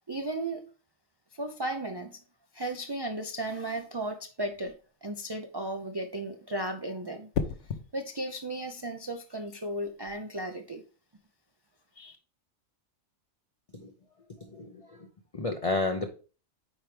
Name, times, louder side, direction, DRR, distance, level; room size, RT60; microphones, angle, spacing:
voice 1, 0.1-0.6 1.3-2.2 2.5-4.7 5.0-7.3 7.9-10.8 12.0-12.2, right 1 dB, 40° right, 0.3 m, -35 dB
sound 1, 4.5-4.9 7.3-7.9 9.8-10.1, left 6 dB, 65° left, 1.1 m, -33 dB
voice 2, 14.5-15.1 15.3-16.1, left 3 dB, 35° left, 0.6 m, -31 dB
9.1 x 4.5 x 3.3 m
omnidirectional pair, 1.4 m